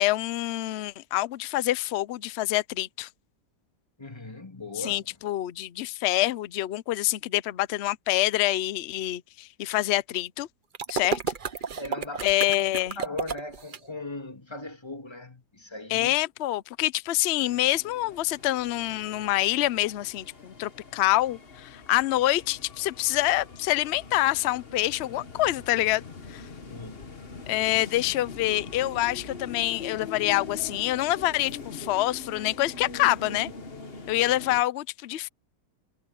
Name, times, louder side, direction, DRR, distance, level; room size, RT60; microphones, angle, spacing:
voice 1, 0.0-3.1 4.8-10.5 10.9-11.2 12.2-13.0 15.9-26.0 26.3-26.5 27.5-33.5 34.1-35.3, left 16 dB, 70° left, 0.6 m, -26 dB
voice 2, 4.0-5.1 11.8-12.6 12.9-16.1 26.7-27.1 27.6-27.7, left 2 dB, 15° left, 2.3 m, -39 dB
sound 1, 10.7-13.8, right 6 dB, 40° right, 0.8 m, -31 dB
sound 2, 17.4-34.6, left 4 dB, 35° left, 1.6 m, -43 dB
omnidirectional pair, 1.8 m